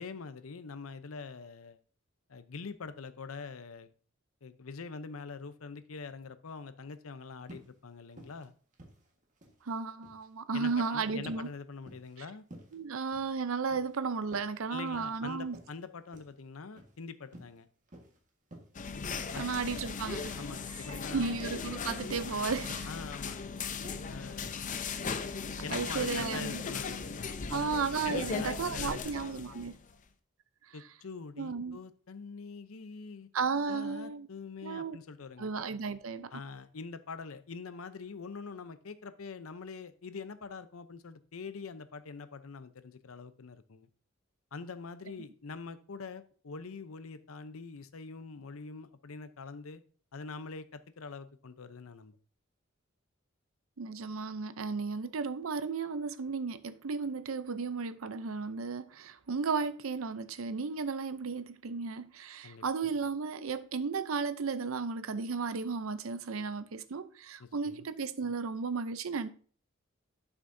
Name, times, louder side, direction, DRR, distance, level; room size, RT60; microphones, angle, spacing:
voice 1, 0.0-1.8 2.3-3.9 4.4-8.5 10.5-12.4 14.7-17.7 19.3-19.5 20.4-21.4 22.9-23.4 24.1-24.7 25.6-29.6 30.7-33.3 33.6-35.5 36.3-43.9 44.5-49.8 50.1-52.2 62.4-62.6 67.4-67.9, left 4 dB, 90° left, 0.7 m, -44 dB
sound 1, 7.5-7.7 8.1-8.4 8.7-9.6 9.9-10.2 10.6-10.9 11.3-11.5 11.9-12.2 12.5-12.8 13.1-13.4 13.7-14.0 14.3-15.2 15.5-15.7 16.1-16.3 16.8-17.0 17.3-17.6 17.9-18.2 18.5-18.7 19.1-19.4 19.7-19.9 20.3-20.5 20.9-21.2 21.5-21.7 22.1-22.3 22.7-23.0 23.3-23.4 23.8-24.1 24.4-24.7 25.0-25.3 25.6-25.8 26.2-26.5 26.8-26.9, right 1 dB, 40° right, 1.6 m, -52 dB
voice 2, 9.6-11.5 12.2-12.3 12.7-15.6 19.3-20.4 20.7-22.9 25.7-26.6 27.5-29.8 31.4-31.8 33.3-34.3 34.6-35.0 35.4-36.3 53.8-69.3, right 5 dB, 80° right, 0.6 m, -34 dB
sound 2, 18.7-29.9, left 5 dB, 40° left, 0.6 m, -38 dB
11.0 x 6.1 x 2.7 m
head